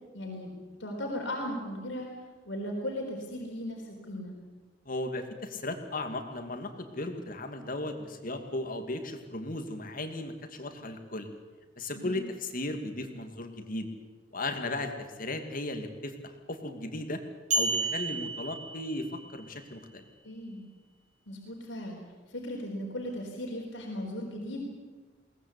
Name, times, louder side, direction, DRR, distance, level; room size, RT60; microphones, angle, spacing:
voice 1, 0.1-2.1 2.5-4.3 11.9-12.2 20.2-20.7 21.3-22.0 22.3-24.6, left 1 dB, 85° left, 0 dB, 4.2 m, -37 dB
voice 2, 4.9-11.3 11.8-13.9 14.3-14.9 15.2-17.2 17.5-20.0, left 2 dB, 50° left, 6 dB, 2.4 m, -36 dB
sound 1, 17.5-19.3, right 2 dB, 40° right, 5.7 m, -31 dB
22.0 x 19.0 x 8.4 m, 1.3 s
head